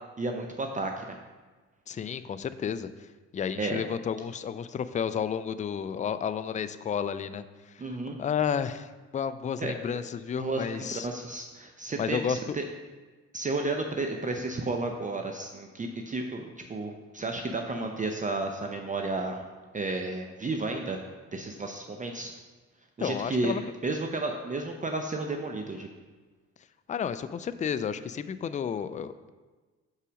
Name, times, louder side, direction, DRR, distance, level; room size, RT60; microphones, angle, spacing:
voice 1, 0.2-1.2 3.6-3.8 7.8-8.2 9.6-10.0 10.4-12.6 13.3-19.4 19.7-21.0 21.3-22.3 23.0-23.5 23.8-25.9, right 2 dB, 25° right, 3 dB, 0.6 m, -32 dB
voice 2, 1.9-2.9 3.3-7.4 7.7-7.8 8.2-11.1 12.0-12.6 23.0-23.6 26.9-29.3, left 7 dB, 25° left, 13 dB, 0.3 m, -31 dB
5.6 x 4.8 x 6.2 m, 1.3 s
cardioid pair, 90°, 30 cm